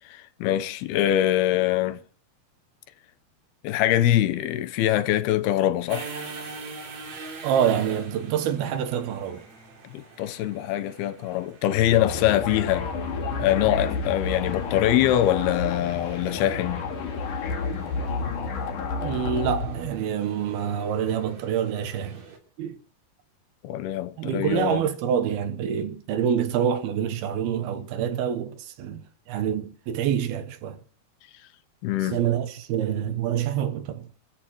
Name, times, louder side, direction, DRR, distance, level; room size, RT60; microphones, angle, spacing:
voice 1, 0.1-2.0 3.6-6.1 9.9-12.9 13.4-16.9 23.6-24.8 31.8-32.2, left 12 dB, 90° left, 2.9 m, -23 dB
sound 1, 5.9-22.4, right 4 dB, 50° right, 3.8 m, -44 dB
voice 2, 7.4-9.4 18.3-18.4 18.9-22.2 22.6-22.8 24.2-30.8 32.1-34.1, right 8 dB, 80° right, 3.1 m, -26 dB
sound 2, 11.7-19.9, left 4 dB, 60° left, 3.4 m, -30 dB
30.0 x 13.5 x 3.1 m
omnidirectional pair, 4.4 m